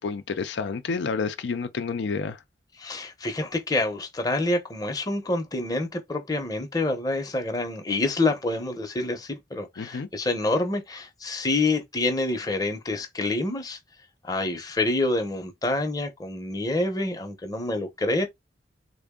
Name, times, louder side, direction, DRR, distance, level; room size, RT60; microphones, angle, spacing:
voice 1, 0.0-2.4 9.8-10.1, left 5 dB, 75° left, 0.4 m, -29 dB
voice 2, 2.8-13.8 14.2-18.3, left 2 dB, 20° left, 0.7 m, -27 dB
3.5 x 2.1 x 3.6 m
head